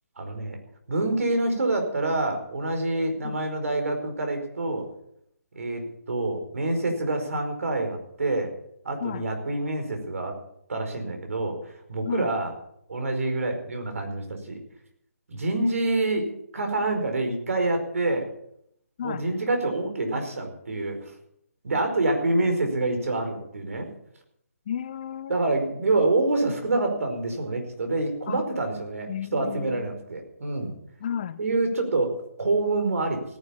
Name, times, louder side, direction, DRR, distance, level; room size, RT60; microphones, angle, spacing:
voice 1, 0.2-0.6 0.9-4.9 5.5-8.5 8.8-10.3 10.7-12.5 12.9-14.6 15.3-18.3 19.0-21.1 21.6-23.9 25.3-30.7 31.4-33.2, right 2 dB, 60° right, 5 dB, 4.9 m, -27 dB
voice 2, 24.7-25.4 28.3-28.4 29.1-29.9 31.0-31.4, left 9 dB, 30° left, 15 dB, 0.6 m, -33 dB
17.0 x 10.5 x 7.1 m, 0.73 s
figure-of-eight pair, 155°, 8 cm